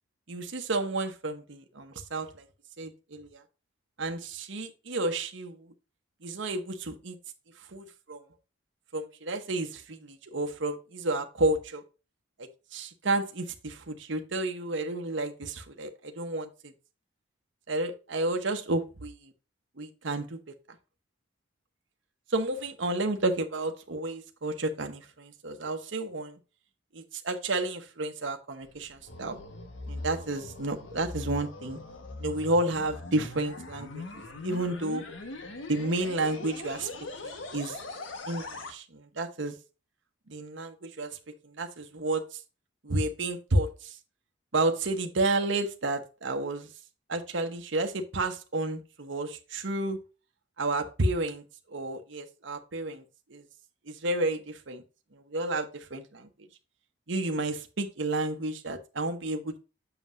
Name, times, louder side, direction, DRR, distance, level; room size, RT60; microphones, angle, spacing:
voice 1, 0.3-2.5 2.8-3.4 4.0-5.7 6.2-7.2 7.7-8.2 8.9-11.8 12.4-16.7 17.7-19.3 19.8-20.4 22.3-26.4 26.9-29.4 29.9-31.8 32.2-34.0 34.4-35.0 35.7-36.9 37.2-37.8 38.3-39.5 40.3-41.2 41.4-42.4 42.8-44.0 44.5-46.7 47.1-50.0 50.6-53.0 53.3-53.4 53.9-54.8 55.1-56.3 57.1-59.6, right 2 dB, 65° right, 1.0 m, -31 dB
sound 1, 28.6-38.7, left 2 dB, 70° left, 1.4 m, -41 dB
7.5 x 6.9 x 2.6 m
head